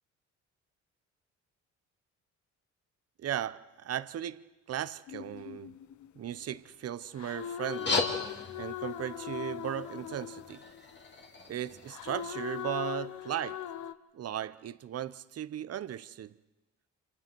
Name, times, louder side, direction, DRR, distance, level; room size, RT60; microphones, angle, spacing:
voice 1, 3.2-5.7 6.2-8.1 8.5-10.6 11.5-13.6 14.1-16.4, right 11 dB, 55° right, 0.8 m, -37 dB
sound 1, 5.1-6.6 7.2-11.0 11.9-13.9, left 11 dB, 70° left, 0.9 m, -40 dB
sound 2, 7.6-12.6, left 3 dB, 35° left, 2.5 m, -37 dB
28.5 x 26.5 x 4.6 m
cardioid pair, 90°, 30 cm